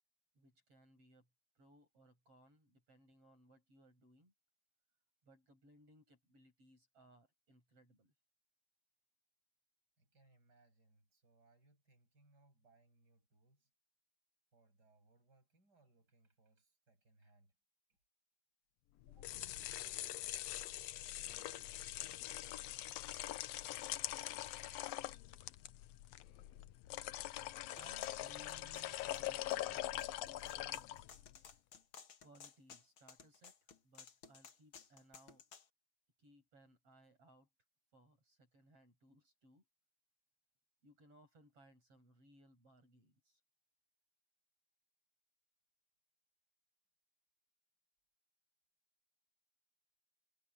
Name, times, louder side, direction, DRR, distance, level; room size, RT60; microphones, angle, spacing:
voice 1, 0.3-1.3 1.6-4.3 5.2-8.1 27.7-30.9 32.2-33.5 33.8-35.4 36.2-37.5 37.9-39.6 40.8-43.4, right 1 dB, 45° right, 8.4 m, -65 dB
voice 2, 10.0-13.7 14.5-17.6 17.9-18.0 19.1-19.4 23.6-23.9, right 3 dB, 30° right, 8.7 m, -71 dB
sound 1, 19.0-31.4, left 14 dB, 75° left, 1.5 m, -43 dB
sound 2, 27.8-35.7, left 6 dB, 45° left, 2.1 m, -57 dB
omnidirectional pair, 3.6 m